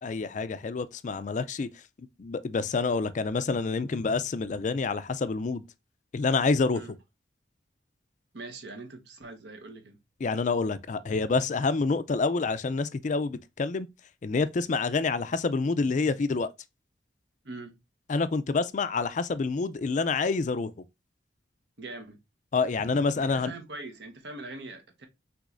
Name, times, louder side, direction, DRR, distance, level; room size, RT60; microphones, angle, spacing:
voice 1, 0.0-5.6 6.1-6.8 10.2-13.9 14.2-16.5 18.1-20.7 22.5-23.5, left 4 dB, 45° left, 0.4 m, -27 dB
voice 2, 8.3-10.0 17.4-17.8 21.8-22.2 23.2-25.1, right 2 dB, 65° right, 1.0 m, -42 dB
6.1 x 3.1 x 2.5 m
head